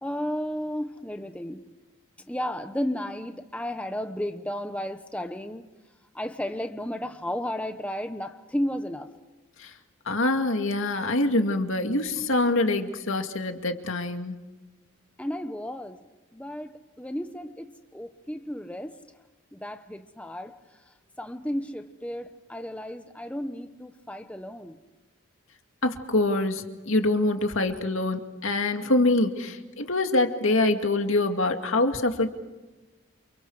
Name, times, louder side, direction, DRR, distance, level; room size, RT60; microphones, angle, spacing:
voice 1, 0.0-1.6 2.3-5.6 6.1-9.1 15.2-16.0 16.3-19.0 19.5-20.6 21.2-24.8, equal, 5° left, 0.9 m, -33 dB
voice 2, 10.1-14.3 25.8-32.3, left 2 dB, 70° left, 2.3 m, -25 dB
29.5 x 29.0 x 4.9 m
head